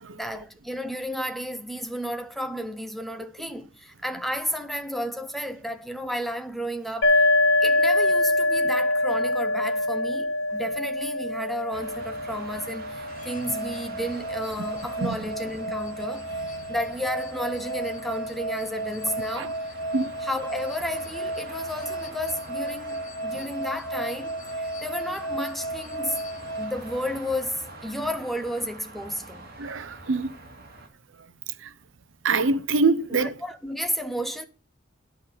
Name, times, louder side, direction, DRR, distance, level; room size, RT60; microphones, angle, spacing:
voice 1, 0.1-7.3 7.6-19.8 20.2-26.2 26.6-29.5 33.1-34.4, equal, ahead, 0.8 m, -32 dB
sound 1, 7.0-14.5, left 2 dB, 75° left, 1.9 m, -24 dB
sound 2, 11.7-30.9, right 2 dB, 50° right, 2.6 m, -44 dB
sound 3, 13.1-27.5, right 1 dB, 40° left, 1.4 m, -34 dB
voice 2, 29.6-30.3 32.2-33.3, right 3 dB, 70° right, 0.6 m, -24 dB
11.0 x 5.6 x 6.7 m
head